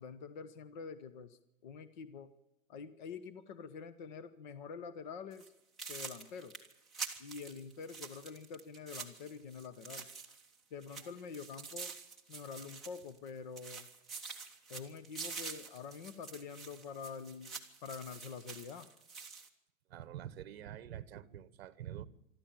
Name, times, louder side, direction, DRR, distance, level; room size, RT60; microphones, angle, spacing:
voice 1, 0.0-2.3 2.7-5.4 5.9-6.5 7.2-10.1 10.7-11.9 12.3-13.9 14.7-17.5 17.8-18.9, left 5 dB, 35° left, 0.9 m, -46 dB
sound 1, 5.3-5.5 5.8-10.5 10.8-13.3 13.6-19.5, right 5 dB, ahead, 1.2 m, -47 dB
voice 2, 19.9-22.1, right 11 dB, 45° right, 1.2 m, -46 dB
24.5 x 13.5 x 8.8 m
supercardioid pair, 175°, 41 cm